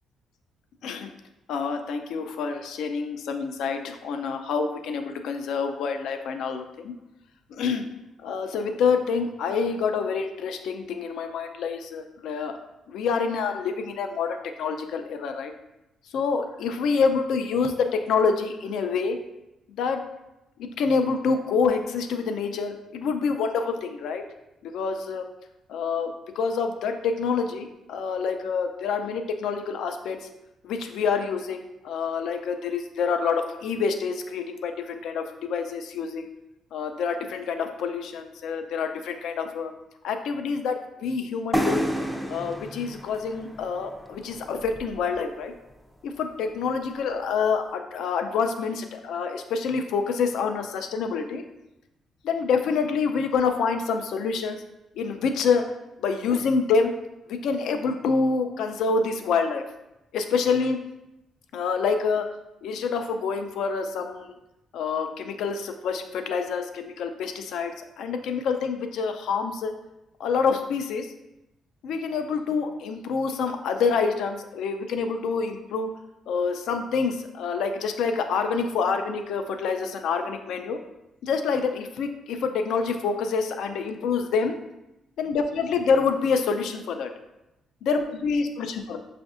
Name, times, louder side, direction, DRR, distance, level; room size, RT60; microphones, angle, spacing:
voice 1, 1.5-6.9 7.5-7.9 8.2-12.6 12.9-15.5 16.1-19.2 19.8-20.1 20.6-24.2 24.6-25.2 25.7-30.2 30.6-36.3 36.7-39.7 40.0-41.9 42.3-45.5 46.0-51.4 52.2-54.6 55.0-55.6 56.0-56.9 57.3-59.6 60.1-60.8 61.5-62.3 62.6-64.3 64.7-69.7 70.2-71.1 71.8-75.9 76.3-80.8 81.2-84.5 85.2-87.1 87.8-89.0, left 5 dB, 80° left, 6 dB, 0.4 m, -27 dB
sound 1, 41.5-45.2, equal, 5° left, 0.4 m, -30 dB
6.0 x 2.5 x 2.4 m, 0.92 s
cardioid pair, 90°, 0 cm